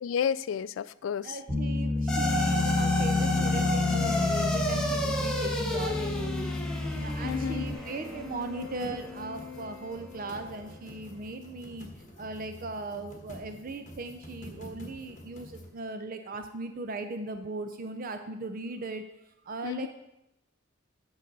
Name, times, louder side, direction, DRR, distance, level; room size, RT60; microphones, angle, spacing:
voice 1, 0.0-1.4 7.2-7.7 19.6-19.9, left 8 dB, 70° left, 17 dB, 0.3 m, -31 dB
voice 2, 1.2-6.5 7.0-11.9 12.2-19.0 19.4-19.9, right 3 dB, 45° right, 8 dB, 0.5 m, -38 dB
Bass guitar, 1.5-7.7, left 1 dB, 15° right, 3.5 m, -31 dB
sound 1, 2.1-10.6, left 2 dB, 5° left, 1.1 m, -31 dB
sound 2, 2.9-15.7, left 1 dB, 40° left, 1.4 m, -48 dB
7.7 x 6.3 x 5.3 m, 0.87 s
head